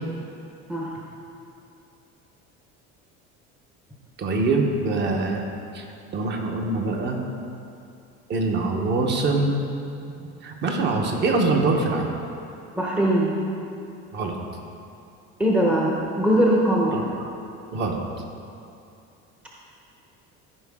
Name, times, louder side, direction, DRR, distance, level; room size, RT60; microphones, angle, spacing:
voice 1, 4.2-5.4 5.7-5.8 6.1-7.2 8.3-9.6 10.4-12.1 14.1-14.4 16.9-17.0 17.7-18.0, right 3 dB, 40° right, 2 dB, 1.0 m, -23 dB
voice 2, 12.8-13.3 15.4-17.0, right 1 dB, 5° right, -3 dB, 0.7 m, -21 dB
13.5 x 4.9 x 3.6 m, 2.6 s
cardioid pair, 155°, 29 cm